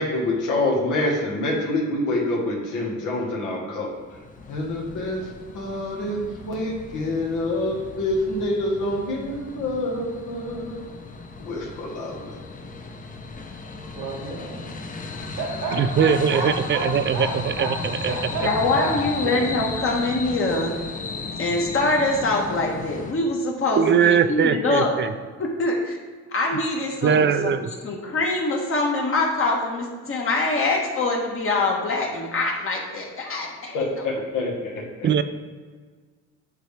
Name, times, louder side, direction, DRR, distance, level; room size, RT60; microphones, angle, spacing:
voice 1, 0.0-3.9 4.5-5.3 5.5-10.9 11.4-12.3 33.7-34.8, left 1 dB, 85° left, -2 dB, 1.4 m, -26 dB
sound 1, 3.9-23.1, left 4 dB, 25° left, 0.7 m, -35 dB
voice 2, 13.9-14.7 15.2-16.8 17.1-17.3 17.6-17.7 18.0-18.9 19.2-19.3, right 2 dB, 85° right, -4 dB, 1.2 m, -31 dB
voice 3, 15.8-18.1 23.8-25.1 27.0-27.7 35.0-35.2, right 7 dB, 40° right, 11 dB, 0.4 m, -21 dB
voice 4, 18.4-20.7 21.3-24.9 25.4-26.0 26.3-33.8, left 2 dB, 45° left, -1 dB, 1.2 m, -24 dB
8.9 x 3.3 x 3.3 m, 1.5 s
cardioid pair, 90°, 30 cm